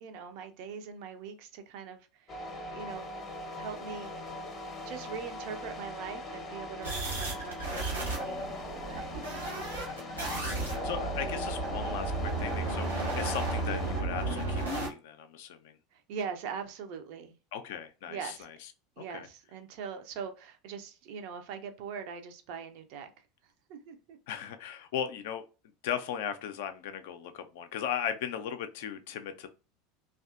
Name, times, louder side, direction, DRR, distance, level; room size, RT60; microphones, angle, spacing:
voice 1, 0.0-2.4 2.7-3.1 3.6-4.1 4.8-9.6 15.9-17.4 18.1-18.5 19.0-23.1 23.7-24.2, right 6 dB, 55° right, 0.5 m, -42 dB
sound 1, 2.3-14.0, left 2 dB, 25° left, 0.7 m, -41 dB
sound 2, 6.8-14.9, right 2 dB, 85° right, 0.8 m, -33 dB
voice 2, 10.2-15.8 17.5-18.5 19.0-19.3 24.3-25.4 25.8-29.5, left 9 dB, 60° left, 0.4 m, -37 dB
2.6 x 2.4 x 2.3 m
figure-of-eight pair, 75°, 0 cm